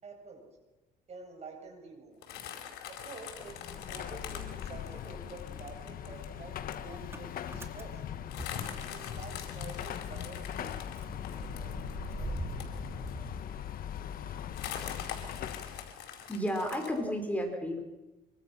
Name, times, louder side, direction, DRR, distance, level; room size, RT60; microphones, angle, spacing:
voice 1, 0.0-0.5 1.1-2.2 2.9-8.0 8.6-12.8, right 3 dB, 40° right, 3 dB, 7.7 m, -49 dB
sound 1, 2.2-6.3 6.7-6.9 7.1-7.2 7.5-7.7 8.3-13.3 13.7-13.8 14.5-17.0, left 9 dB, 80° left, 4.6 m, -44 dB
Motor vehicle (road) / Engine starting, 3.2-4.5 4.7-9.4 9.7-9.8 10.1-14.2, right 2 dB, 15° right, 2.8 m, -45 dB
Car passing by / Traffic noise roadway noise / Engine, 3.3-16.0, left 9 dB, 60° left, 1.4 m, -40 dB
voice 2, 16.3-17.8, equal, 10° left, 3 dB, 5.2 m, -32 dB
25.0 x 24.5 x 6.1 m, 1.1 s
cardioid pair, 110°, 17 cm